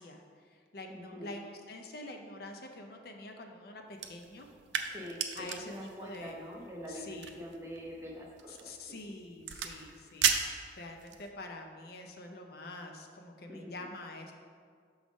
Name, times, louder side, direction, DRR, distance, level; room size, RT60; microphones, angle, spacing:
voice 1, 0.0-4.5 5.3-6.4 6.9-7.4 8.5-14.3, left 2 dB, 55° left, 3 dB, 0.5 m, -46 dB
voice 2, 0.9-1.3 4.8-9.0 13.5-13.7, equal, 15° right, -2 dB, 0.7 m, -45 dB
sound 1, 3.9-11.3, right 7 dB, 80° right, 0.5 m, -37 dB
6.2 x 3.6 x 5.1 m, 2.1 s
head